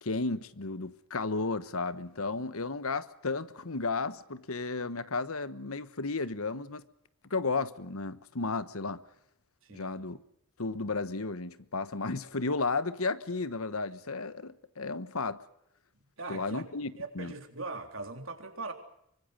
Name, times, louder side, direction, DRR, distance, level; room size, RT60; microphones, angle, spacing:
voice 1, 0.0-6.8 7.3-9.0 9.7-10.2 10.6-15.4 16.3-17.3, left 3 dB, 75° left, 1.3 m, -33 dB
voice 2, 9.6-10.0 16.2-16.6 16.9-18.7, right 3 dB, 65° right, 3.7 m, -40 dB
25.5 x 24.0 x 6.6 m
head